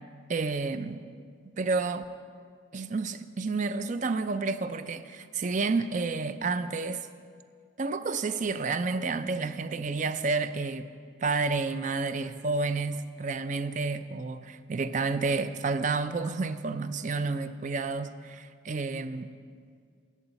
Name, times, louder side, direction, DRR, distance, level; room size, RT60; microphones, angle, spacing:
voice 1, 0.3-1.0 1.6-2.0 2.7-7.1 7.8-10.9 11.2-19.3, right 4 dB, 40° right, 11 dB, 0.4 m, -30 dB
14.5 x 8.8 x 4.1 m, 2.1 s
head